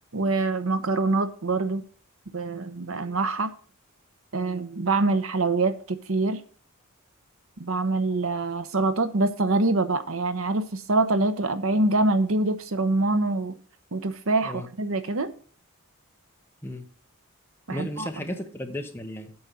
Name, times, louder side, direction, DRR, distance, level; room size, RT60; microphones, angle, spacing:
voice 1, 0.1-1.8 2.3-3.5 4.3-6.4 7.6-13.5 13.9-15.3 17.7-18.1, right 2 dB, 70° right, 0.9 m, -25 dB
voice 2, 17.7-19.3, left 1 dB, 10° left, 0.9 m, -34 dB
8.7 x 5.4 x 7.0 m
head